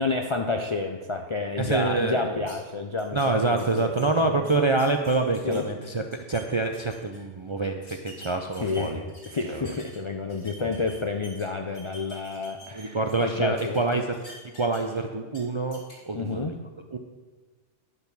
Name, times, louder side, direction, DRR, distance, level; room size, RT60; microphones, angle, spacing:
voice 1, 0.0-4.5 5.4-5.7 8.6-14.0 16.1-16.6, left 3 dB, 45° left, 5 dB, 0.4 m, -30 dB
voice 2, 1.6-2.5 3.1-6.0 6.3-9.0 9.5-9.7 12.7-14.0 14.5-16.5 16.9-17.0, right 3 dB, 45° right, 4 dB, 0.3 m, -26 dB
sound 1, 2.5-2.6 3.0-3.3 3.6-5.6 6.0-6.4 6.7-7.2 7.9-10.0 10.3-11.4 11.7-13.2 13.6-15.0 15.3-15.4 15.7-16.0, left 1 dB, 80° left, 2.6 m, -47 dB
11.0 x 4.1 x 7.0 m, 1.3 s
omnidirectional pair, 1.2 m